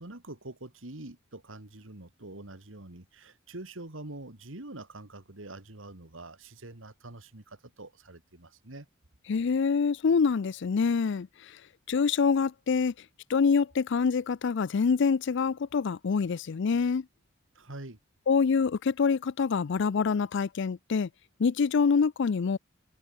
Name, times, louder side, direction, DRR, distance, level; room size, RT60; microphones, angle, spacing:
voice 1, 0.0-8.9 17.5-18.0, right 2 dB, 70° right, 2.5 m, -45 dB
voice 2, 9.3-11.3 11.9-12.9 13.3-17.0 18.3-21.1 21.4-22.6, left 5 dB, 65° left, 0.4 m, -25 dB
open air
head